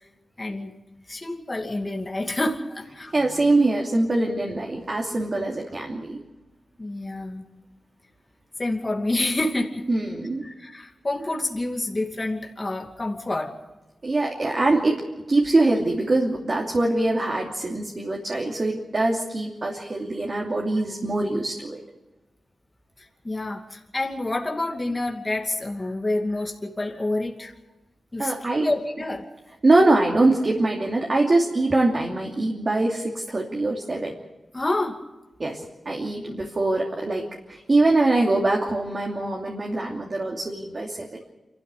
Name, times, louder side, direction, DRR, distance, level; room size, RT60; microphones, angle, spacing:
voice 1, 0.4-0.7 1.1-3.1 5.3-5.4 6.8-7.5 8.6-9.9 10.4-13.5 23.0-27.5 28.1-28.3 28.6-29.3 34.5-35.0, left 2 dB, 20° left, 1 dB, 2.6 m, -28 dB
voice 2, 3.1-6.2 9.9-10.5 14.0-21.8 28.2-28.7 29.6-34.1 35.4-41.3, right 2 dB, 35° right, -1 dB, 2.9 m, -23 dB
28.0 x 13.0 x 8.5 m, 1.1 s
wide cardioid pair, 105°, 0 cm